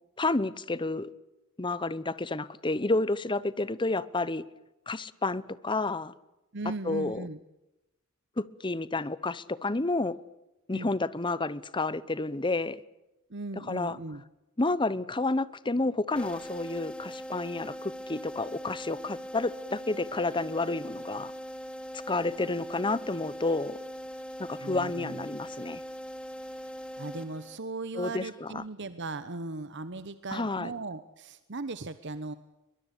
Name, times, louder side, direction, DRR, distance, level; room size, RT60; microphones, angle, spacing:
voice 1, 0.2-1.1 1.6-4.4 4.9-6.1 6.8-7.3 8.4-10.2 10.7-12.8 13.7-14.0 14.6-21.3 22.1-23.8 24.4-25.8 28.0-28.6 30.3-30.7, left 2 dB, 20° left, 0.9 m, -30 dB
voice 2, 6.5-7.4 10.7-10.9 13.3-14.2 24.6-25.2 27.0-32.3, right 2 dB, 55° right, 1.1 m, -38 dB
sound 1, 16.2-27.9, equal, 5° left, 1.9 m, -41 dB
23.0 x 21.5 x 8.3 m
head